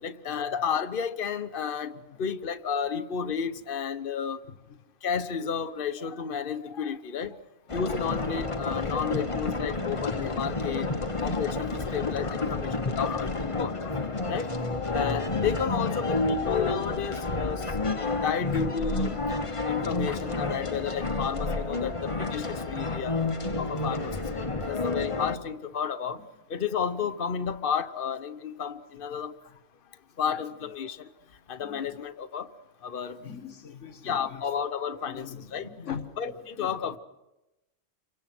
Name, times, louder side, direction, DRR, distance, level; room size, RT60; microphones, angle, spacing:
voice 1, 0.0-4.4 5.0-7.4 7.7-10.9 11.2-13.9 14.2-14.5 14.9-17.6 18.0-19.1 19.7-23.1 23.6-26.2 26.5-29.3 30.2-31.0 31.5-32.5 32.8-33.2 34.0-35.7 36.2-37.0, left 7 dB, 50° left, 10 dB, 1.2 m, -32 dB
sound 1, 7.7-25.4, left 3 dB, 25° left, 1.1 m, -30 dB
voice 2, 31.6-32.0 33.2-34.4 35.1-36.1 36.6-36.7, left 8 dB, 75° left, 8 dB, 1.8 m, -43 dB
29.0 x 24.5 x 6.1 m, 0.98 s
omnidirectional pair, 1.3 m